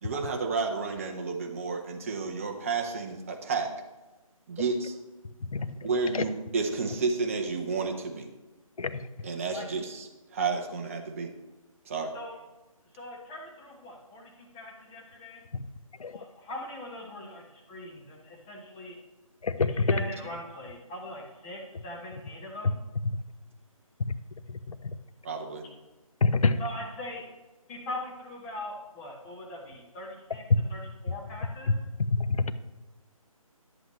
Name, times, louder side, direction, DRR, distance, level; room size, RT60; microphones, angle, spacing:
voice 1, 0.0-3.7 4.5-4.9 5.8-8.3 9.2-11.3 11.9-12.1 25.2-25.7, right 4 dB, 25° right, 3 dB, 0.7 m, -31 dB
voice 2, 12.9-15.4 16.1-19.0 19.6-22.8 26.6-27.2 27.7-31.8, left 1 dB, 10° left, -2 dB, 0.9 m, -41 dB
voice 3, 19.4-19.9 24.0-24.1 26.2-26.6 30.5-30.6 32.3-32.5, left 4 dB, 70° left, 12 dB, 0.7 m, -25 dB
11.0 x 7.9 x 3.1 m, 1.1 s
figure-of-eight pair, 160°, 18 cm